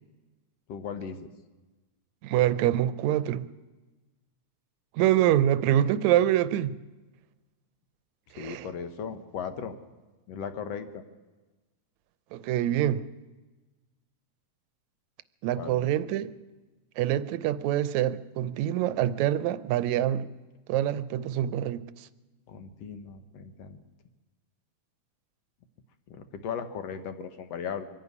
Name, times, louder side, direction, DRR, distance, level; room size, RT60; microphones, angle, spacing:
voice 1, 0.7-1.3 8.4-9.8 10.3-11.0 15.5-15.9 22.5-23.8 26.1-27.8, left 7 dB, 65° left, 9 dB, 2.2 m, -37 dB
voice 2, 2.2-3.5 4.9-6.7 8.3-8.7 12.3-13.0 15.4-16.3 17.0-20.3 20.7-22.1, right 12 dB, 80° right, 15 dB, 2.0 m, -25 dB
24.5 x 11.0 x 9.6 m, 1.2 s
omnidirectional pair, 3.3 m